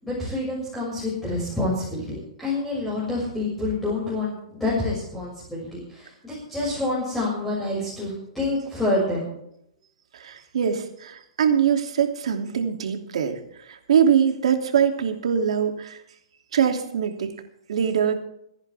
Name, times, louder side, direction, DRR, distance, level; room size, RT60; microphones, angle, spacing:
voice 1, 0.0-9.3, left 2 dB, 5° left, -7 dB, 6.4 m, -27 dB
voice 2, 10.1-13.4 13.7-16.0 16.5-17.3 17.7-18.1, right 8 dB, 75° right, 5 dB, 2.8 m, -23 dB
26.5 x 10.5 x 3.5 m, 0.75 s
hypercardioid pair, 145°, 3 cm